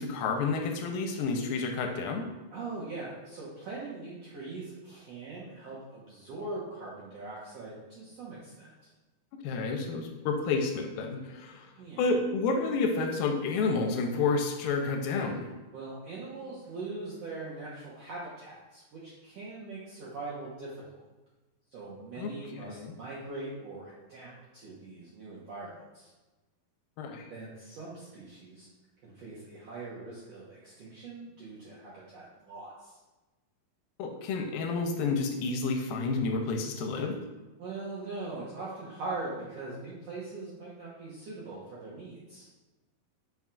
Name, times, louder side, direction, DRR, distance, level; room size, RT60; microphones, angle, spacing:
voice 1, 0.0-2.3 9.4-11.7 12.0-15.5 22.2-22.3 22.7-22.9 27.0-27.3 34.0-37.2, left 4 dB, 85° left, 4 dB, 2.3 m, -30 dB
voice 2, 2.5-8.9 11.7-12.1 15.7-21.0 21.7-26.1 27.3-28.7 29.0-33.0 37.6-42.5, right 3 dB, 75° right, -7 dB, 1.5 m, -41 dB
7.5 x 5.4 x 2.3 m, 1.2 s
omnidirectional pair, 4.3 m